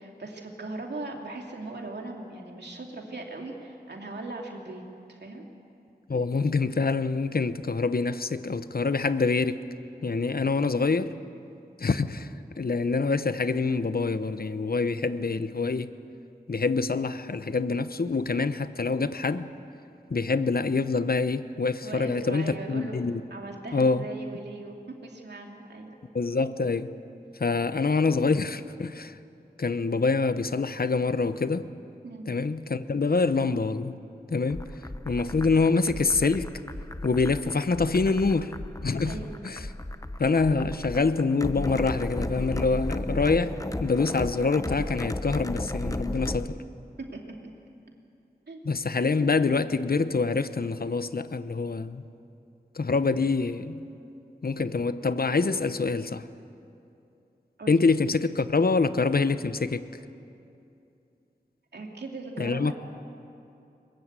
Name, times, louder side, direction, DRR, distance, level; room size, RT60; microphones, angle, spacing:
voice 1, 0.0-4.8 5.1-5.4 21.8-22.9 23.3-25.9 32.0-32.4 39.0-39.3 47.0-47.2 48.5-48.6 57.6-57.8 61.7-62.7, right 2 dB, 90° right, 2.8 m, -39 dB
voice 2, 6.1-9.6 10.0-11.1 11.8-12.3 12.6-15.9 16.5-19.5 20.1-23.2 23.7-24.1 26.1-26.9 27.4-29.2 29.6-31.7 32.3-34.0 34.3-34.7 35.0-36.5 37.0-38.5 38.8-39.2 39.4-39.7 40.2-46.6 48.6-52.0 52.7-53.9 54.4-56.2 57.7-59.8 62.4-62.7, left 4 dB, 65° left, 0.9 m, -26 dB
sound 1, 34.5-46.5, left 1 dB, 20° left, 1.0 m, -34 dB
21.5 x 21.5 x 8.2 m
wide cardioid pair, 45°, 17 cm